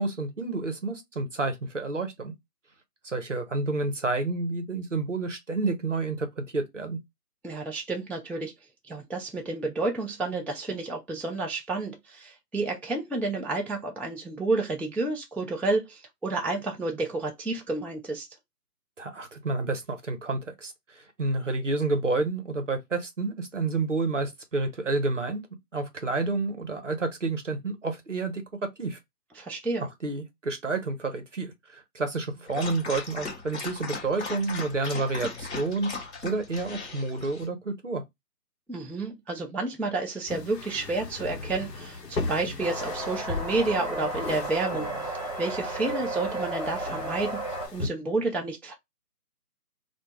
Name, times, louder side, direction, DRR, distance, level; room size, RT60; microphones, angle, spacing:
voice 1, 0.0-2.3 3.0-7.0 19.0-25.4 25.7-28.4 28.8-29.0 30.0-38.0, right 3 dB, 50° right, 0.5 m, -29 dB
voice 2, 7.4-8.5 8.9-18.3 29.4-29.8 38.7-45.1 45.4-48.7, right 3 dB, 5° left, 0.3 m, -30 dB
Dog, 32.5-37.5, left 3 dB, 45° left, 1.0 m, -38 dB
sound 1, 40.3-47.9, left 3 dB, 80° left, 0.8 m, -37 dB
sound 2, 42.6-47.7, right 2 dB, 25° right, 1.0 m, -33 dB
2.3 x 2.1 x 3.0 m
figure-of-eight pair, 175°, 48 cm